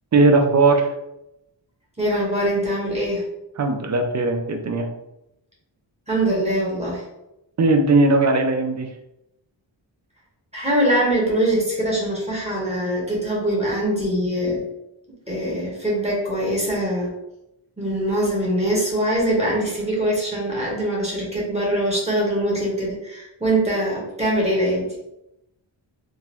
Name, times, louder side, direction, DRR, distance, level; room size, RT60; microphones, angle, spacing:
voice 1, 0.1-0.9 3.6-4.9 7.6-8.9, right 3 dB, 40° right, 5 dB, 0.5 m, -18 dB
voice 2, 2.0-3.2 6.1-7.0 10.5-14.6 15.3-17.1 17.8-24.9, right 1 dB, 15° right, -5 dB, 1.1 m, -23 dB
3.7 x 2.5 x 2.9 m, 0.88 s
wide cardioid pair, 160°, 46 cm